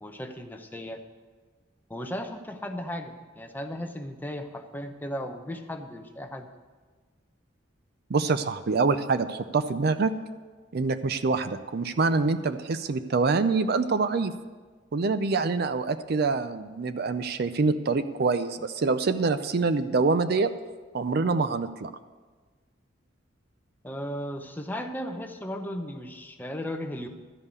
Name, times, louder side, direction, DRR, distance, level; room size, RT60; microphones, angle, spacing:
voice 1, 0.0-1.0 1.9-6.5 23.8-27.1, equal, 10° left, 5 dB, 0.7 m, -36 dB
voice 2, 8.1-10.1 10.7-14.3 14.9-20.5 20.9-21.9, right 4 dB, 55° right, 11 dB, 0.5 m, -25 dB
13.0 x 5.5 x 8.1 m, 1.4 s
head